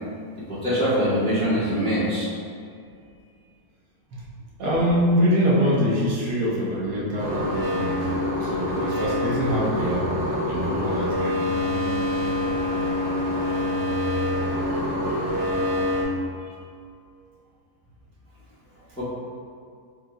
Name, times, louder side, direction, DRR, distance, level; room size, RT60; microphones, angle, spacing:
voice 1, 0.5-2.3 19.0-19.1, equal, 5° left, -11 dB, 0.7 m, -23 dB
voice 2, 4.6-8.0 8.4-10.1 10.5-11.5 16.4-16.5, equal, 75° right, -4 dB, 1.3 m, -24 dB
sound 1, 7.2-16.0, left 1 dB, 40° right, 1.1 m, -25 dB
6.3 x 2.5 x 2.3 m, 2.3 s
omnidirectional pair, 1.7 m